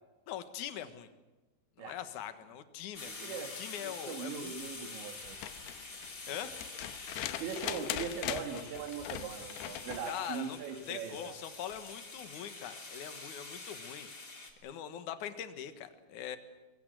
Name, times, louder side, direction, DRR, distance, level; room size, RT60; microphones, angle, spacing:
voice 1, 0.3-1.1 1.8-4.9 6.3-6.6 10.1-14.1 14.6-16.4, left 10 dB, 60° left, 10 dB, 2.4 m, -42 dB
sound 1, 2.9-14.5, left 3 dB, 25° left, 3.3 m, -47 dB
voice 2, 3.0-3.5 3.8-5.4 7.4-11.3, right 7 dB, 90° right, 6 dB, 4.1 m, -40 dB
sound 2, 5.2-10.1 11.7-11.8, left 13 dB, 75° left, 2.9 m, -40 dB
24.0 x 23.5 x 7.7 m, 1.1 s
omnidirectional pair, 5.1 m